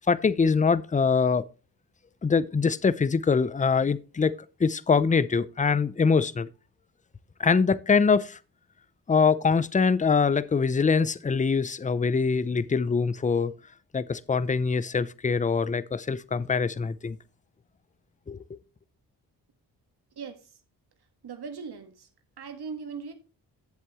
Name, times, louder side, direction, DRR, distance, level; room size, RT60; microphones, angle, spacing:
voice 1, 0.1-1.4 2.2-4.3 4.6-6.5 7.4-8.4 9.1-13.5 13.9-17.2 18.3-18.6, left 5 dB, 20° left, 0.6 m, -24 dB
voice 2, 20.1-20.5 21.2-22.1 22.4-23.1, right 5 dB, 60° right, 1.7 m, -39 dB
10.5 x 7.5 x 3.1 m
supercardioid pair, 45°, 44 cm